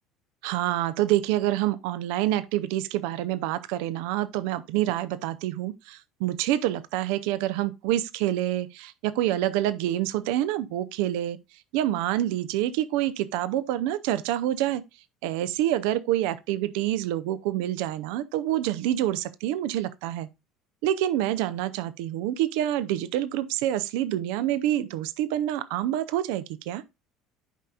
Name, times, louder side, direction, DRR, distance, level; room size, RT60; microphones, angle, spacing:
voice 1, 0.4-11.4 11.7-14.8 15.2-20.3 20.8-26.8, right 13 dB, 65° right, 0.6 m, -27 dB
11.0 x 5.4 x 2.3 m
figure-of-eight pair, 65°, 0 cm